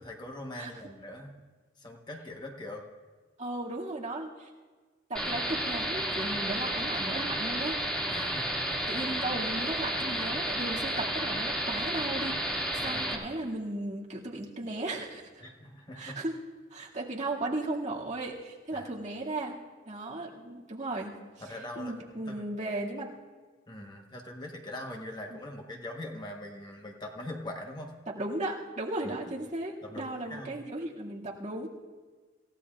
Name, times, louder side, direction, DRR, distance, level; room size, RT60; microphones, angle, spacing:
voice 1, 0.0-1.3 1.8-2.8 8.1-8.9 12.8-13.0 15.4-16.2 18.7-18.9 21.4-21.9 22.3-22.5 23.7-27.9 29.8-30.6, left 1 dB, 20° left, 1 dB, 1.2 m, -42 dB
voice 2, 3.4-4.5 5.1-7.8 8.9-15.4 16.0-16.3 16.7-19.5 19.9-21.1 21.8-23.1 25.3-25.4 28.2-31.7, right 2 dB, 40° right, -4 dB, 2.1 m, -36 dB
sound 1, 5.2-13.2, right 1 dB, 5° left, 2.2 m, -32 dB
27.0 x 15.5 x 2.4 m, 1.4 s
head